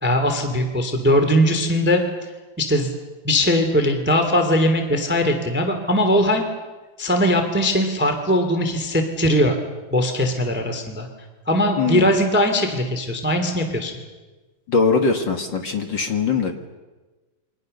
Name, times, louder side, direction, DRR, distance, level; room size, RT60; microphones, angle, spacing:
voice 1, 0.0-2.0 2.6-2.9 3.2-6.4 7.0-9.6 9.9-11.1 11.5-13.9, equal, 5° right, 6 dB, 2.0 m, -20 dB
voice 2, 11.8-12.1 14.7-16.5, left 5 dB, 45° left, 5 dB, 1.6 m, -21 dB
28.5 x 23.5 x 6.7 m, 1.2 s
omnidirectional pair, 4.2 m